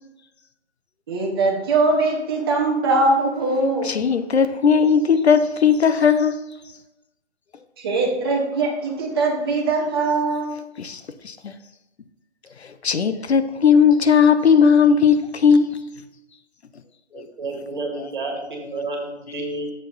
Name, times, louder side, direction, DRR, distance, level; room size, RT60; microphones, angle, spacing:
voice 1, 1.1-4.0 7.8-10.5, right 3 dB, 20° right, 0.9 m, -21 dB
voice 2, 3.8-6.4 10.8-11.5 12.8-15.9 17.1-17.2, left 6 dB, 65° left, 0.6 m, -17 dB
voice 3, 17.1-19.7, right 2 dB, 45° right, 1.8 m, -30 dB
7.1 x 4.5 x 3.9 m
figure-of-eight pair, 150°, 34 cm